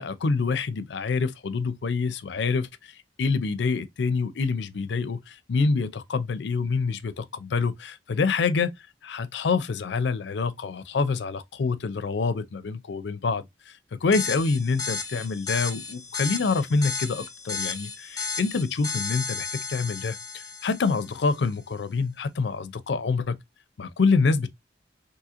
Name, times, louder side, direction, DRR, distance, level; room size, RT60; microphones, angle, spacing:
voice 1, 0.0-2.9 3.2-8.7 9.0-13.7 14.0-23.4 23.8-24.5, left 4 dB, 80° left, 0.5 m, -26 dB
sound 1, 14.1-21.3, left 5 dB, 20° left, 0.6 m, -34 dB
3.6 x 2.7 x 2.8 m
head